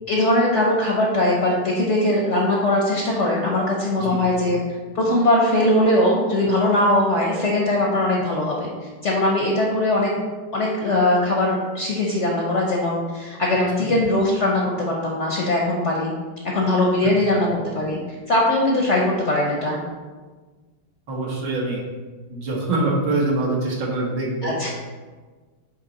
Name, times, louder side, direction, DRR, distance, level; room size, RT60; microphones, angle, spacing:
voice 1, 0.1-4.6 4.9-10.1 10.5-16.1 16.5-17.5 17.7-18.0 18.3-19.8 24.4-24.7, left 1 dB, 55° left, -2 dB, 0.8 m, -20 dB
voice 2, 21.1-21.8 22.3-24.5, right 2 dB, 70° right, -3 dB, 1.9 m, -24 dB
8.0 x 3.0 x 4.1 m, 1.4 s
omnidirectional pair, 2.0 m